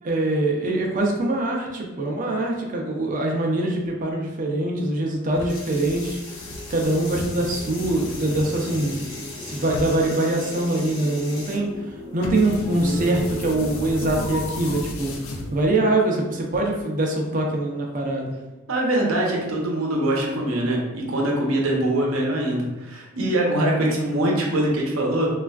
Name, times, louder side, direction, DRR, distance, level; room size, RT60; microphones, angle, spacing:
voice 1, 0.0-6.2 6.7-11.7 12.1-15.1 15.5-18.3, right 2 dB, 40° right, 0 dB, 0.5 m, -23 dB
sound 1, 5.3-15.9, left 2 dB, 90° left, 0.4 m, -34 dB
sound 2, 5.5-11.6, left 2 dB, 65° left, 0.8 m, -40 dB
sound 3, 6.3-14.7, right 1 dB, 5° left, 0.6 m, -39 dB
voice 2, 18.7-25.3, right 1 dB, 85° right, -1 dB, 0.7 m, -23 dB
3.2 x 2.4 x 2.3 m, 1.1 s
head